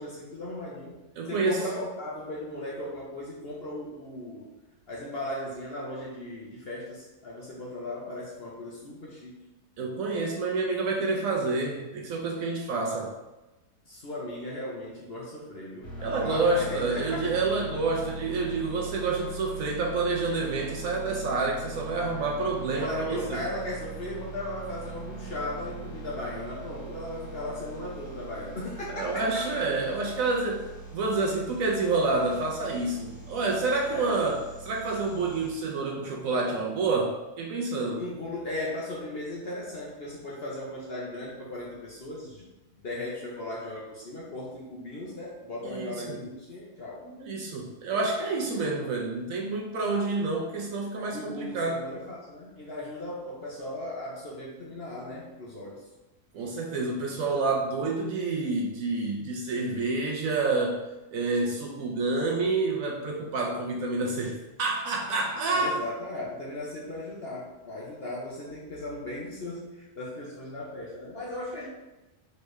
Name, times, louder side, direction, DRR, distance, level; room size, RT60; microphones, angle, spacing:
voice 1, 0.0-1.0 1.3-4.5 4.9-9.4 13.9-17.3 22.7-29.6 33.9-34.2 37.9-42.5 42.8-47.1 51.1-55.8 65.4-71.7, left 1 dB, 50° left, -4 dB, 0.8 m, -37 dB
voice 2, 1.2-1.6 9.8-13.1 16.0-23.4 28.9-30.6 30.9-38.0 45.6-46.2 47.1-51.8 56.3-60.8 61.1-65.8, right 3 dB, 65° right, 0 dB, 1.0 m, -28 dB
sound 1, 15.8-35.5, right 3 dB, 80° left, 2.2 m, -41 dB
4.5 x 3.1 x 3.2 m, 1.0 s
omnidirectional pair, 1.7 m